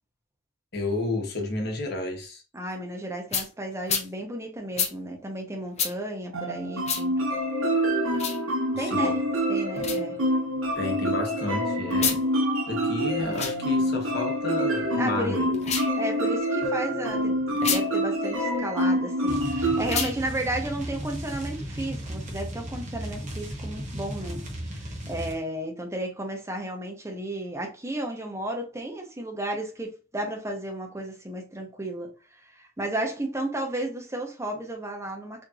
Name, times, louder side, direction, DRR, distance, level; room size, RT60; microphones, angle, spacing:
voice 1, 0.7-2.4 8.7-9.2 10.7-12.2 12.7-15.6, left 2 dB, 55° left, 1.1 m, -31 dB
voice 2, 2.5-7.1 8.8-9.2 9.5-10.2 15.0-15.5 16.0-32.1 32.5-35.4, right 1 dB, 15° right, 0.9 m, -33 dB
sound 1, 3.3-3.5 3.9-4.1 4.8-4.9 5.8-5.9 6.8-7.0 8.1-8.4 9.8-10.0 11.9-12.2 13.3-13.6 15.5-15.9 17.6-17.8 19.8-20.2, left 6 dB, 35° left, 0.7 m, -28 dB
sound 2, 6.3-20.0, equal, 90° right, 1.1 m, -26 dB
sound 3, 19.3-25.4, equal, 35° right, 1.1 m, -35 dB
4.2 x 3.3 x 2.4 m
head